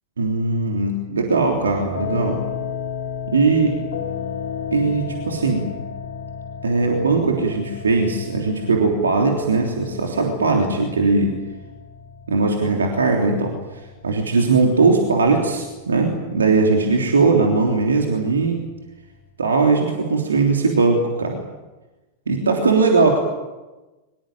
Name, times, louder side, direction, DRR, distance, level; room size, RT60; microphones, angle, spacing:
voice 1, 0.2-2.4 3.3-3.7 4.7-5.7 6.6-11.3 12.3-13.6 14.0-18.6 19.4-21.4 22.3-23.2, right 3 dB, 70° right, 1 dB, 3.3 m, -19 dB
sound 1, 1.3-19.3, left 7 dB, 65° left, 3.4 m, -34 dB
24.0 x 21.5 x 9.1 m, 1.1 s
figure-of-eight pair, 90°, 0 cm